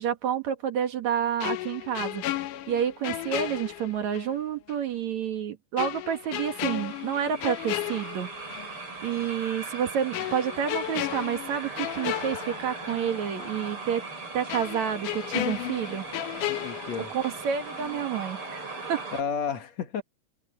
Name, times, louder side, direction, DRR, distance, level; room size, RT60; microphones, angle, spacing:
voice 1, 0.0-2.2 2.7-8.3 9.0-14.0 14.3-16.1 17.1-19.0, right 9 dB, 65° right, 3.0 m, -29 dB
sound 1, 1.4-4.4 4.7-4.8 5.8-8.7 9.1-9.3 10.1-13.1 13.4-13.6 14.5-17.5 17.8-18.0, left 14 dB, 80° left, 2.6 m, -34 dB
sound 2, 6.2-19.2, right 3 dB, 40° right, 8.6 m, -39 dB
voice 2, 16.4-17.1 19.1-20.0, left 6 dB, 60° left, 2.8 m, -32 dB
omnidirectional pair, 3.6 m